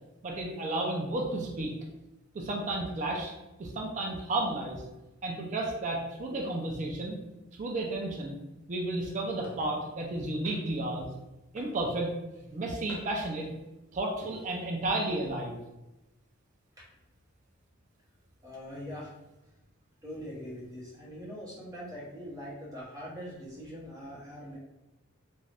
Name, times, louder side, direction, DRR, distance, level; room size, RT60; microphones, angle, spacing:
voice 1, 0.2-1.7 2.3-3.3 3.6-4.8 5.2-7.2 7.6-8.4 8.7-11.1 11.5-12.1 12.5-13.5 13.9-15.6, right 2 dB, 35° right, 0 dB, 0.3 m, -32 dB
sound 1, 9.4-9.7 10.4-10.9 11.6-12.1 12.9-13.4 14.1-14.4, left 1 dB, 75° left, 0.7 m, -49 dB
voice 2, 18.4-19.1 20.0-24.6, equal, 15° right, -7 dB, 0.9 m, -42 dB
2.5 x 2.2 x 3.2 m, 0.99 s
head